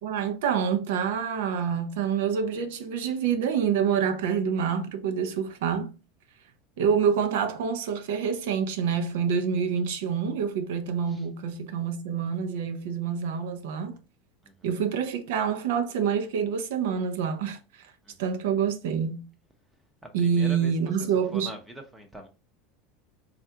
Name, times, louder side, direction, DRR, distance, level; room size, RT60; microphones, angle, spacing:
voice 1, 0.0-5.9 6.8-13.9 14.6-17.8 18.2-19.2 20.1-21.5, right 7 dB, 80° right, 0.6 m, -27 dB
voice 2, 20.2-22.3, right 1 dB, 5° right, 0.6 m, -44 dB
3.3 x 2.4 x 2.7 m
supercardioid pair, 155°, 0 cm